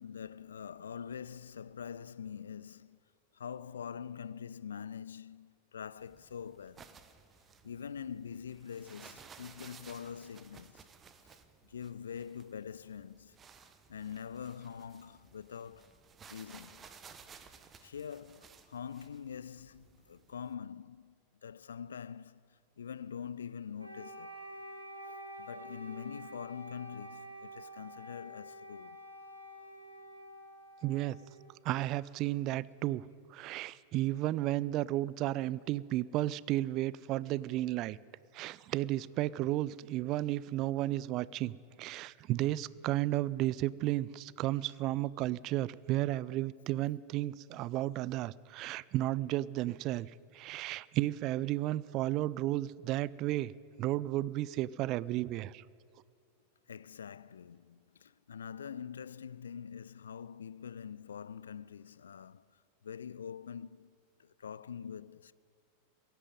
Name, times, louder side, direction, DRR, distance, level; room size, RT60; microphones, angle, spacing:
voice 1, 0.0-3.0 3.3-6.9 7.6-10.9 11.6-13.4 13.9-16.0 16.3-16.9 17.8-21.1 21.4-24.3 25.1-29.0 56.7-65.3, left 7 dB, 70° left, 0.3 m, -44 dB
sound 1, 6.0-20.5, right 6 dB, 20° right, 0.9 m, -57 dB
Wind instrument woodwind instrument, 23.8-31.8, equal, 85° right, 1.7 m, -49 dB
voice 2, 30.8-31.2 31.6-33.0 33.3-38.0 38.3-41.5 41.8-53.5 53.8-55.6, right 15 dB, 40° right, 0.3 m, -33 dB
16.5 x 9.1 x 9.2 m
figure-of-eight pair, 90°, 0 cm